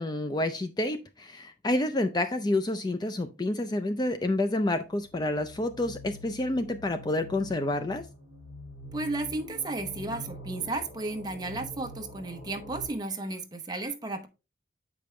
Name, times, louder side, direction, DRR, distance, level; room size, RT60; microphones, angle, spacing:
voice 1, 0.0-8.0, left 1 dB, 20° left, 8 dB, 0.4 m, -29 dB
sound 1, 4.2-12.9, equal, 60° left, 2.5 m, -45 dB
voice 2, 8.9-14.3, right 2 dB, 20° right, 6 dB, 0.8 m, -33 dB
7.9 x 5.2 x 3.1 m, 0.28 s
head